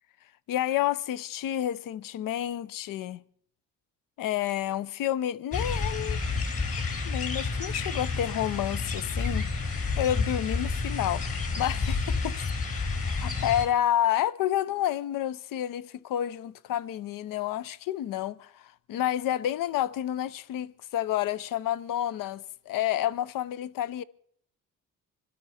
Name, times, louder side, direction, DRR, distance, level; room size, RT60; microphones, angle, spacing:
voice 1, 0.5-3.2 4.2-6.2 7.1-9.5 10.0-12.3 12.9-24.0, left 11 dB, 75° left, 0.6 m, -30 dB
sound 1, 5.5-13.7, left 4 dB, 45° left, 4.0 m, -30 dB
26.0 x 13.0 x 4.2 m
cardioid pair, 100°, 33 cm